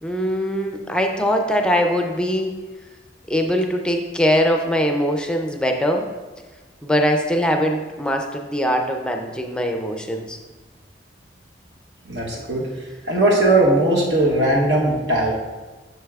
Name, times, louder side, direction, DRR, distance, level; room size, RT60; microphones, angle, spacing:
voice 1, 0.0-2.5 3.3-6.1 6.8-10.4, equal, 5° left, 3 dB, 0.4 m, -21 dB
voice 2, 12.1-12.6 13.1-15.3, right 1 dB, 75° right, -3 dB, 1.0 m, -18 dB
7.9 x 6.0 x 2.3 m, 1.2 s
head